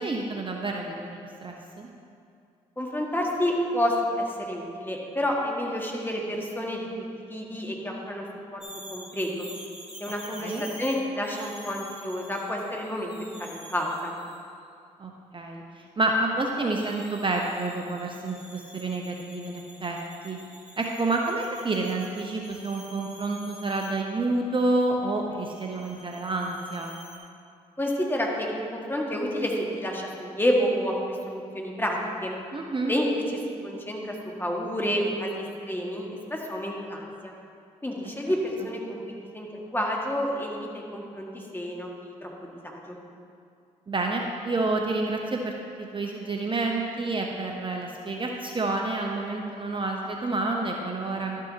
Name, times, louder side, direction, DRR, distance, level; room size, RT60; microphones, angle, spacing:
voice 1, 0.0-1.9 10.4-10.6 15.0-15.6 16.0-20.0 20.2-20.4 20.8-26.9 32.5-32.9 43.9-51.4, right 2 dB, 35° right, 1 dB, 0.8 m, -29 dB
voice 2, 2.8-6.9 7.3-8.2 8.5-8.6 8.9-9.5 10.0-14.2 27.8-32.3 32.9-37.3 37.8-39.0 39.3-43.0, equal, 15° left, -1 dB, 1.8 m, -29 dB
sound 1, 8.6-14.5 16.6-23.9 25.4-27.2, equal, 5° right, 1.9 m, -47 dB
12.0 x 6.3 x 2.8 m, 2.4 s
supercardioid pair, 45°, 15 cm